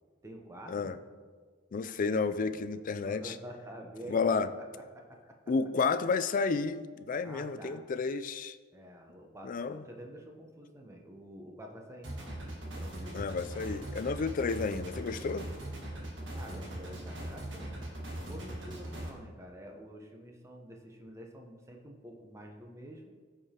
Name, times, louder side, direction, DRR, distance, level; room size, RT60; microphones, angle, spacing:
voice 1, 0.2-0.9 2.0-4.5 4.9-5.4 7.2-7.8 8.7-12.4 12.8-13.2 16.3-17.7 18.2-23.1, right 1 dB, 15° right, 2 dB, 0.8 m, -48 dB
voice 2, 1.7-3.3 4.1-4.5 5.5-8.6 9.4-9.8 13.1-15.5, left 4 dB, 45° left, 12 dB, 0.3 m, -31 dB
sound 1, 12.0-19.1, right 1 dB, 65° right, 1.5 m, -40 dB
14.0 x 4.9 x 2.9 m, 1.5 s
head